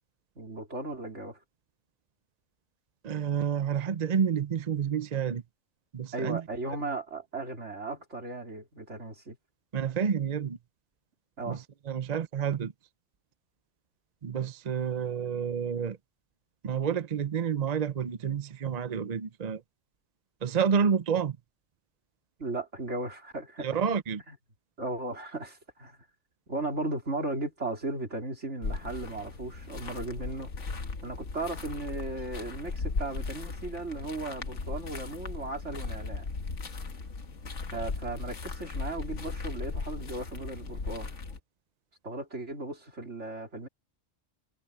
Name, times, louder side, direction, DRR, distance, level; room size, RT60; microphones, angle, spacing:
voice 1, 0.4-1.4 6.1-9.4 11.4-11.6 22.4-23.8 24.3-24.4 24.8-26.0 26.5-30.5 31.0-36.3 37.7-41.1 42.0-43.7, right 2 dB, 60° right, 4.3 m, -36 dB
voice 2, 3.0-5.4 5.9-6.4 9.7-10.6 11.5-11.6 11.9-12.7 14.2-16.0 16.6-19.6 20.4-21.4 23.6-24.2, right 7 dB, 40° right, 0.6 m, -29 dB
sound 1, 28.6-41.4, left 4 dB, 65° left, 1.9 m, -37 dB
omnidirectional pair, 1.4 m